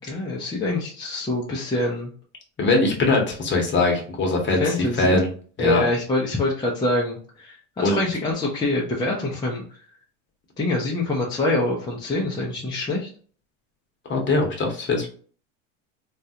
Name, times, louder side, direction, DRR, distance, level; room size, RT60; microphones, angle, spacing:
voice 1, 0.0-2.1 4.6-5.2 5.6-9.6 10.6-13.1, left 2 dB, 10° left, -4 dB, 0.6 m, -25 dB
voice 2, 2.6-5.3 5.6-5.8 7.8-8.0 14.1-15.1, left 2 dB, 30° left, 2 dB, 1.0 m, -21 dB
3.1 x 2.4 x 2.8 m, 0.44 s
supercardioid pair, 110°, 39 cm